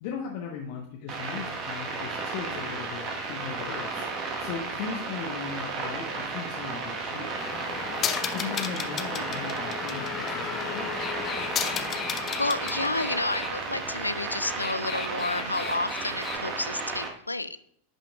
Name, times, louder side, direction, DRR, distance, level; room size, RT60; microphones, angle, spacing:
voice 1, 0.0-4.1 4.4-7.4 8.3-10.9, left 6 dB, 45° left, 0 dB, 1.0 m, -38 dB
sound 1, 1.1-17.1, right 4 dB, 35° right, 1.3 m, -34 dB
sound 2, 7.4-13.5 14.4-16.4, left 8 dB, 25° left, 0.6 m, -34 dB
voice 2, 12.4-17.6, left 2 dB, 85° left, 13 dB, 0.4 m, -30 dB
10.5 x 5.7 x 2.3 m, 0.69 s
figure-of-eight pair, 90°, 0 cm